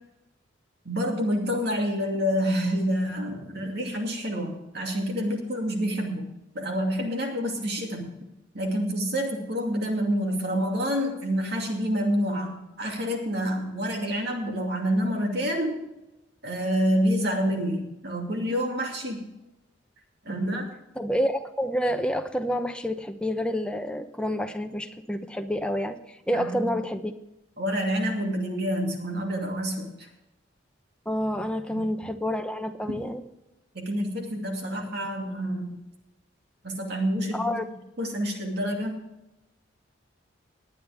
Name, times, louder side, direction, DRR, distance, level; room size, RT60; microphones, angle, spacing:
voice 1, 0.8-6.3 6.5-8.1 8.5-15.8 16.4-19.3 20.2-20.7 26.3-26.7 27.6-30.1 31.7-31.8 33.7-35.7 36.6-37.6 38.0-39.0, equal, 55° right, 2 dB, 2.5 m, -28 dB
voice 2, 21.0-27.1 31.1-33.2 37.3-37.6, equal, 5° left, 6 dB, 0.9 m, -28 dB
19.5 x 9.9 x 3.5 m, 0.93 s
head